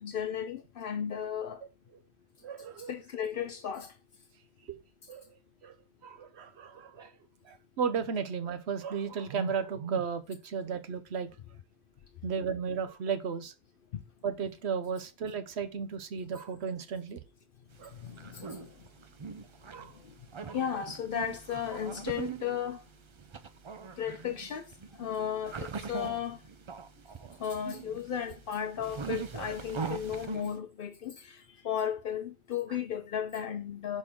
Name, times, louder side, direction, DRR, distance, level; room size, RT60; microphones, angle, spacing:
voice 1, 0.0-1.6 2.9-3.9 18.0-18.7 20.5-22.8 24.0-24.7 25.0-26.4 27.4-31.4 31.6-34.0, left 8 dB, 65° left, 0.7 m, -35 dB
voice 2, 2.4-2.9 4.7-4.8 5.1-5.2 5.6-5.7 6.0-7.1 7.5-11.3 12.2-13.5 14.2-17.2 17.8-17.9 18.4-18.5 19.7-19.9 20.5-20.8, right 6 dB, 90° right, 1.1 m, -34 dB
sound 1, 17.8-30.6, right 6 dB, 40° right, 0.4 m, -42 dB
6.0 x 4.4 x 3.6 m
omnidirectional pair, 1.1 m